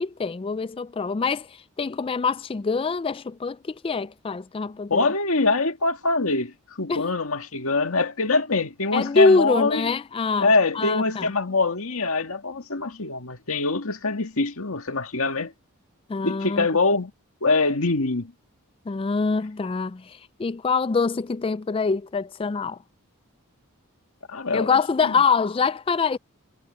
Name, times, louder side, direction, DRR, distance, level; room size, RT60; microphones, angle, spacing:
voice 1, 0.0-5.1 6.9-7.0 8.9-11.3 16.1-16.7 18.9-22.8 24.5-26.2, left 4 dB, 25° left, 0.3 m, -24 dB
voice 2, 4.9-9.8 10.4-15.5 16.2-17.1 17.4-18.3 24.3-24.7 25.1-25.2, left 3 dB, 75° left, 2.0 m, -24 dB
head